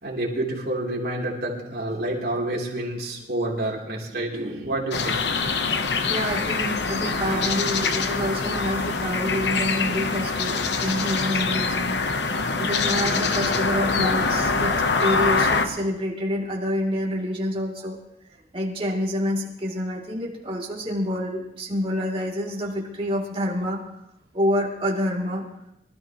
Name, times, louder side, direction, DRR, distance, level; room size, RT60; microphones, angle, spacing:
voice 1, 0.0-5.2 7.2-7.5 7.8-8.0, right 1 dB, 60° right, -3 dB, 3.5 m, -29 dB
sound 1, 4.9-15.7, left 4 dB, 75° left, 1.0 m, -24 dB
voice 2, 5.8-12.0 12.4-14.7 15.0-18.0 18.5-23.8 24.3-25.4, equal, 35° right, -3 dB, 2.9 m, -27 dB
25.0 x 13.5 x 3.1 m, 0.86 s
head